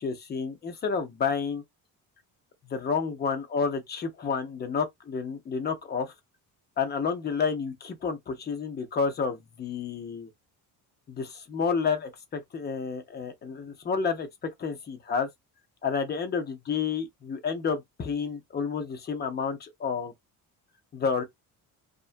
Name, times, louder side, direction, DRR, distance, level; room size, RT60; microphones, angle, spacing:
voice 1, 0.0-1.6 2.7-6.1 6.8-10.3 11.1-15.3 15.8-20.1 20.9-21.2, left 5 dB, 25° left, 0.6 m, -30 dB
2.4 x 2.1 x 2.4 m
cardioid pair, 135°, 36 cm